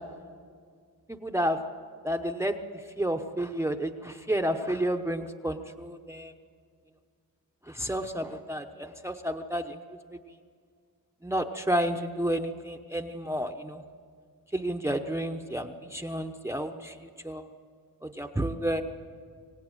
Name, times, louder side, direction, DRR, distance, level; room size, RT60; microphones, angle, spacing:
voice 1, 1.1-1.6 2.0-2.6 3.0-6.3 7.7-9.8 11.2-13.8 14.5-16.9 17.2-17.5 18.0-18.8, right 1 dB, 10° right, 5 dB, 0.9 m, -31 dB
25.0 x 17.5 x 9.1 m, 2.1 s
wide cardioid pair, 115°, 36 cm